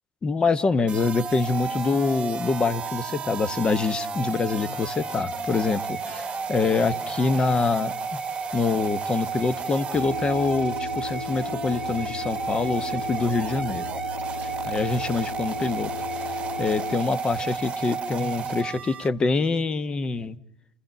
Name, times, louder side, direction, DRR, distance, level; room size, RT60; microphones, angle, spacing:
voice 1, 0.2-8.2 8.5-13.9 14.4-15.9 16.6-20.4, left 4 dB, 25° left, 14 dB, 1.2 m, -25 dB
sound 1, 0.9-19.1, right 5 dB, 30° right, 1.3 m, -32 dB
sound 2, 9.9-17.0, left 7 dB, 70° left, 1.2 m, -37 dB
29.5 x 15.0 x 9.1 m, 0.86 s
hypercardioid pair, 75°, 4 cm